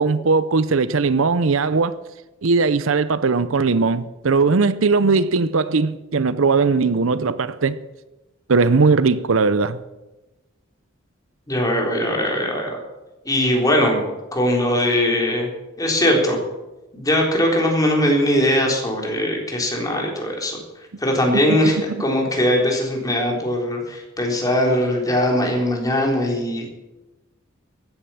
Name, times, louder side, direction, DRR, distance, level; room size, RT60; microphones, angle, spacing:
voice 1, 0.0-1.9 2.4-7.8 8.5-9.8 21.3-21.7, right 4 dB, 80° right, 0.7 m, -19 dB
voice 2, 11.5-12.8 13.3-14.0 14.3-15.5 15.8-16.4 16.9-20.6 21.0-26.7, left 1 dB, 20° left, 3.7 m, -20 dB
15.5 x 10.0 x 7.1 m
head